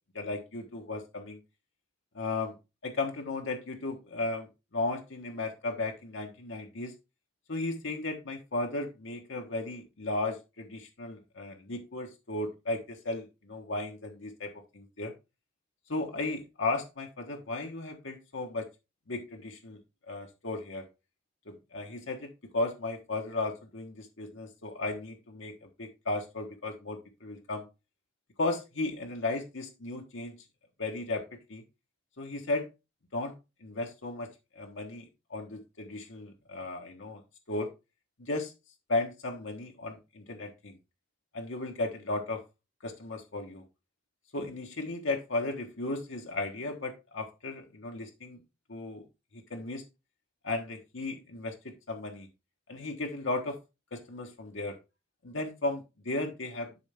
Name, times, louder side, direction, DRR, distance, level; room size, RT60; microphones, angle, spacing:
voice 1, 0.1-1.4 2.1-2.6 2.8-6.9 7.5-15.1 15.9-18.7 19.1-19.8 20.1-20.9 21.5-27.7 28.4-30.4 30.8-31.6 32.2-32.7 33.1-33.3 33.6-37.2 37.5-37.7 38.2-38.5 38.9-40.8 41.3-42.4 42.8-43.6 44.3-48.4 48.7-49.0 49.3-49.8 50.4-52.3 52.7-53.6 53.9-54.8 55.2-56.7, left 2 dB, 90° left, 2 dB, 1.3 m, -35 dB
11.5 x 4.4 x 3.5 m, 0.26 s
head